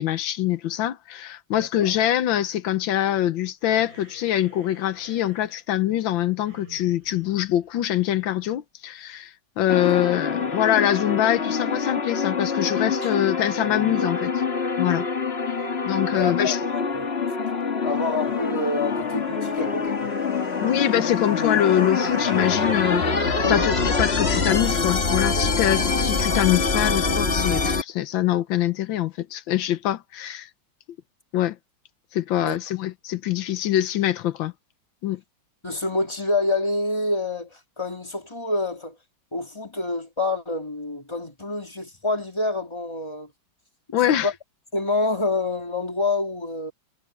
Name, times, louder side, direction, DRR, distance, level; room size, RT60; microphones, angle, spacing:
voice 1, 0.0-14.3 14.8-15.1 15.8-16.6 20.6-30.5 31.3-31.6 32.1-34.5 35.0-35.2 43.9-44.3, left 12 dB, 85° left, 1.6 m, -24 dB
voice 2, 1.6-2.0 9.7-10.0 15.4-15.7 16.1-17.1 17.8-20.1 23.4-23.7 32.4-32.6 35.6-39.0 39.3-43.3 44.1-44.3 44.7-46.7, left 2 dB, 15° left, 2.8 m, -27 dB
sound 1, 3.6-8.3, right 2 dB, 85° right, 7.5 m, -51 dB
sound 2, 9.7-27.8, left 4 dB, 35° left, 1.9 m, -25 dB
sound 3, 18.0-25.6, left 2 dB, 60° left, 8.7 m, -52 dB
omnidirectional pair, 2.0 m